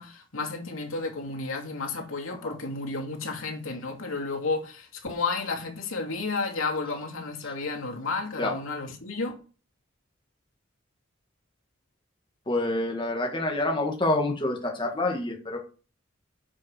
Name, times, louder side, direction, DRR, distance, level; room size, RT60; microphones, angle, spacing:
voice 1, 0.0-9.3, left 3 dB, 85° left, 2.7 m, -32 dB
voice 2, 12.5-15.6, left 2 dB, 25° left, 1.8 m, -27 dB
9.5 x 6.1 x 6.5 m
head